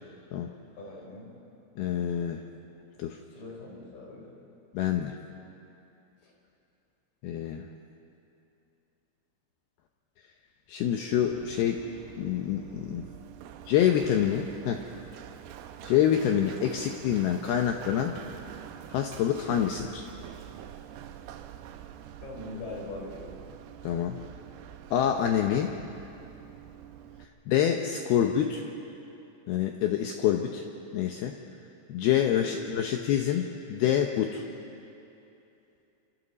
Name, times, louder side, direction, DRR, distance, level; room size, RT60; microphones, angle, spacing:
voice 1, 0.8-1.3 3.3-4.3 6.2-6.3 22.2-23.4 32.3-32.5, left 2 dB, 55° left, -2 dB, 5.5 m, -42 dB
voice 2, 1.8-2.4 3.0-3.2 4.7-5.2 7.2-7.7 10.7-11.8 12.2-13.1 13.7-14.8 15.8-18.1 18.9-20.1 23.8-24.2 24.9-25.8 27.5-28.6 29.5-30.6 30.9-31.4 31.9-34.4, left 10 dB, 85° left, 4 dB, 2.2 m, -26 dB
Run, 11.1-27.2, right 10 dB, 85° right, 2.3 m, -46 dB
28.0 x 26.0 x 4.1 m, 2.8 s
omnidirectional pair, 5.6 m